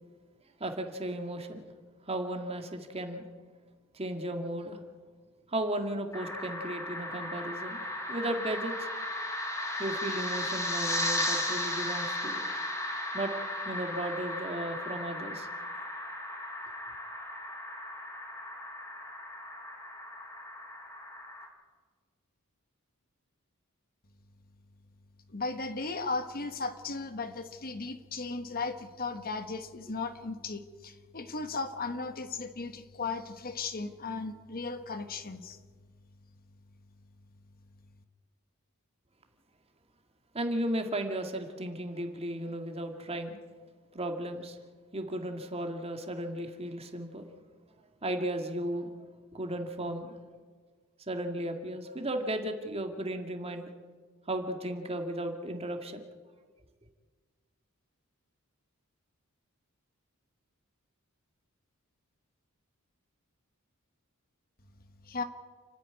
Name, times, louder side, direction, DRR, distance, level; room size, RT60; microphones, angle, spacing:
voice 1, 0.6-1.7 2.1-3.2 3.9-4.8 5.5-8.9 9.8-12.4 13.1-13.3 13.7-15.5 40.3-43.4 43.9-44.6 44.9-47.2 48.0-48.9 49.3-50.2 51.1-53.7 54.3-56.0, right 1 dB, 30° right, 5 dB, 2.0 m, -35 dB
sound 1, 6.1-21.5, left 1 dB, 15° left, 4.0 m, -36 dB
voice 2, 25.3-35.6 65.1-65.2, left 3 dB, 40° left, 9 dB, 1.3 m, -36 dB
29.0 x 9.9 x 9.7 m, 1.5 s
head